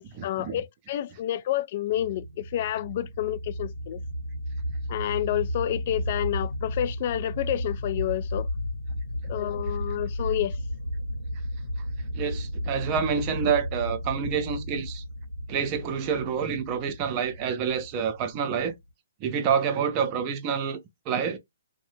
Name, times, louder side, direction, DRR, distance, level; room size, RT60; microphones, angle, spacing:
voice 1, 0.0-4.0 4.9-8.5 9.3-10.6, left 12 dB, 45° left, 0.3 m, -29 dB
sound 1, 1.9-18.9, left 1 dB, 90° left, 0.9 m, -33 dB
voice 2, 12.1-15.0 15.5-18.7 19.2-20.8 21.1-21.4, right 7 dB, 30° right, 0.6 m, -27 dB
2.6 x 2.1 x 3.1 m
hypercardioid pair, 135°, 0 cm